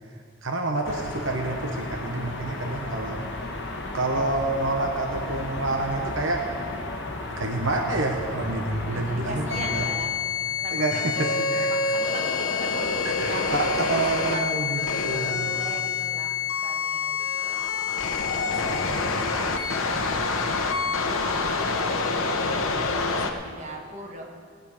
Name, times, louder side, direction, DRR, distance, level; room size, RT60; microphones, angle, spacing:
voice 1, 0.4-3.2 3.9-6.4 7.4-9.9 10.7-11.9 13.2-15.6, right 2 dB, 70° right, 2 dB, 1.1 m, -28 dB
sound 1, 0.8-10.0, left 2 dB, 60° left, 1.3 m, -34 dB
voice 2, 8.8-13.9 14.3-14.5 15.0-17.6 18.3-20.4 20.7-21.5 22.4-24.3, right 2 dB, 35° right, 0 dB, 1.5 m, -40 dB
sound 2, 9.5-23.3, left 4 dB, 85° left, 1.0 m, -27 dB
18.5 x 9.1 x 5.0 m, 2.2 s
head